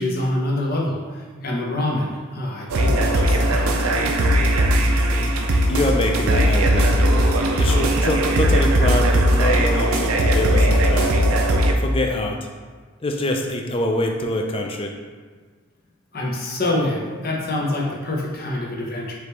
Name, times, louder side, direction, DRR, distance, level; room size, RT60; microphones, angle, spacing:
voice 1, 0.0-4.2 16.1-19.1, left 1 dB, 45° left, -1 dB, 0.7 m, -26 dB
sound 1, 2.7-11.7, right 1 dB, 85° right, 0.5 m, -18 dB
voice 2, 5.7-6.9 7.6-11.1 11.8-12.4 13.0-14.9, left 1 dB, 25° left, 2 dB, 0.4 m, -24 dB
4.8 x 3.0 x 3.3 m, 1.5 s
head